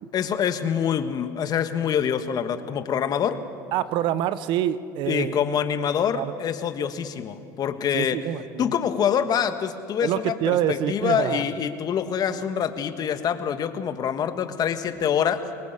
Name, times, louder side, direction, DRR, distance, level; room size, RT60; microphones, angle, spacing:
voice 1, 0.1-3.4 5.1-8.2 8.6-15.4, left 8 dB, 45° left, 9 dB, 1.5 m, -25 dB
voice 2, 3.7-5.4 6.1-6.3 7.9-8.7 10.0-11.5, right 11 dB, 60° right, 14 dB, 0.9 m, -26 dB
23.5 x 21.5 x 6.9 m, 2.4 s
hypercardioid pair, 80°, 9 cm